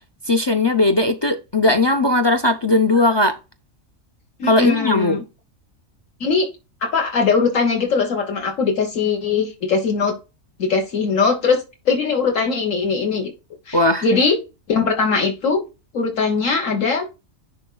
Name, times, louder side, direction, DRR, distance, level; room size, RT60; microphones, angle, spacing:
voice 1, 0.3-3.4 4.5-5.2 13.7-14.0, left 2 dB, 45° left, 0.3 m, -18 dB
voice 2, 4.4-5.2 6.2-6.5 6.8-10.1 10.6-13.3 13.7-14.4 14.7-15.6 15.9-17.1, left 5 dB, 75° left, 1.6 m, -20 dB
11.5 x 4.1 x 2.2 m
omnidirectional pair, 1.3 m